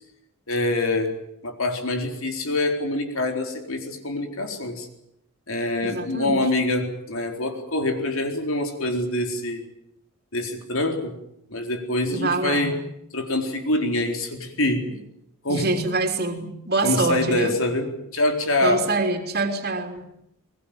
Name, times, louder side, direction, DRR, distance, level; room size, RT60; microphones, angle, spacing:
voice 1, 0.5-1.1 1.4-4.9 5.5-9.7 10.3-11.2 11.5-12.8 13.1-14.9 15.4-15.7 16.8-18.9, left 2 dB, 65° left, 4 dB, 4.2 m, -25 dB
voice 2, 5.8-6.4 12.1-12.7 14.9-15.0 15.5-17.5 18.6-20.1, right 3 dB, 45° right, 4 dB, 3.3 m, -25 dB
23.0 x 21.0 x 9.1 m, 0.76 s
head